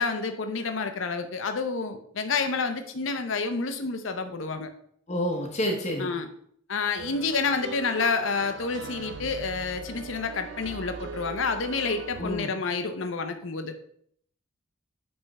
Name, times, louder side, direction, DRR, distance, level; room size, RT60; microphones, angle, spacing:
voice 1, 0.0-4.7 6.0-6.3 6.7-13.8, left 4 dB, 75° left, 7 dB, 0.7 m, -29 dB
voice 2, 5.1-6.1 12.2-12.5, equal, 35° left, 1 dB, 0.9 m, -28 dB
sound 1, 7.0-12.4, right 4 dB, 65° right, 0.5 m, -40 dB
8.7 x 3.5 x 4.1 m, 0.64 s
head